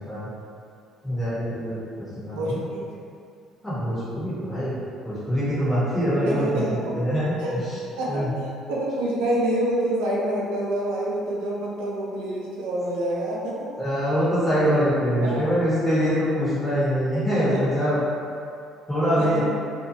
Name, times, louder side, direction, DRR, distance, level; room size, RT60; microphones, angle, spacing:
voice 1, 1.0-1.8 2.1-2.6 3.6-4.7 5.0-7.4 7.6-7.8 8.1-8.3 13.8-18.0 18.9-19.4, equal, 10° left, -11 dB, 1.1 m, -24 dB
voice 2, 2.3-2.8 6.2-6.9 7.4-7.6 8.0-8.2 8.7-13.7 15.2-15.5 17.5-17.8 19.2-19.4, right 1 dB, 90° right, -5 dB, 0.6 m, -27 dB
2.6 x 2.3 x 2.7 m, 2.4 s
supercardioid pair, 75°, 0 cm